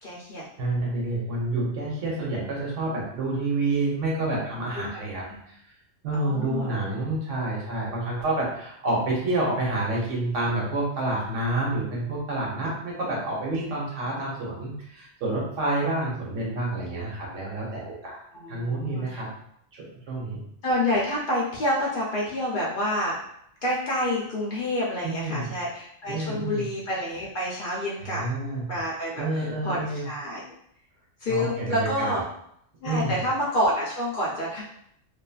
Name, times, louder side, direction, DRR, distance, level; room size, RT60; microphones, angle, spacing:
voice 1, 0.0-0.4 4.8-5.4 6.1-6.8 18.3-19.2 20.6-23.2 23.6-28.2 28.7-30.4 31.2-32.2 32.8-34.6, left 1 dB, 55° left, -5 dB, 0.6 m, -28 dB
voice 2, 0.6-5.5 6.0-19.3 19.7-20.4 25.0-25.5 26.1-26.7 28.0-28.7 29.2-30.1 31.3-32.2 32.8-33.2, right 2 dB, 80° right, -4 dB, 1.2 m, -28 dB
2.7 x 2.5 x 2.3 m, 0.72 s
omnidirectional pair, 1.3 m